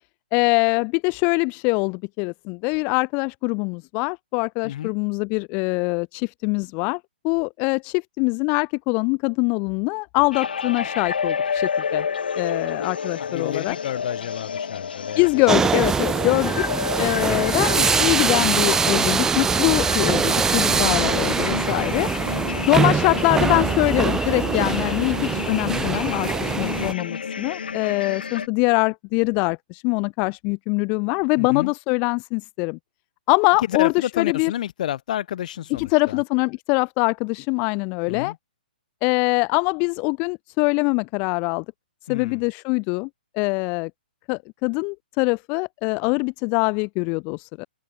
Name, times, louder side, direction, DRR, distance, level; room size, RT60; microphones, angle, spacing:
voice 1, 0.3-12.1 12.4-13.8 15.2-16.7 17.0-22.1 22.7-32.8 33.3-34.5 35.8-38.3 39.0-41.6 42.1-43.1 43.3-43.9 44.3-47.6, left 32 dB, 30° left, 0.8 m, -23 dB
sound 1, 10.3-28.5, left 6 dB, 75° left, 0.9 m, -30 dB
voice 2, 13.2-15.4 25.8-26.1 31.4-31.7 33.7-36.2 38.1-38.4 42.1-42.4, left 11 dB, 50° left, 5.5 m, -30 dB
sound 2, 15.5-26.9, right 5 dB, 10° right, 0.7 m, -23 dB
hypercardioid pair, 130°, 5 cm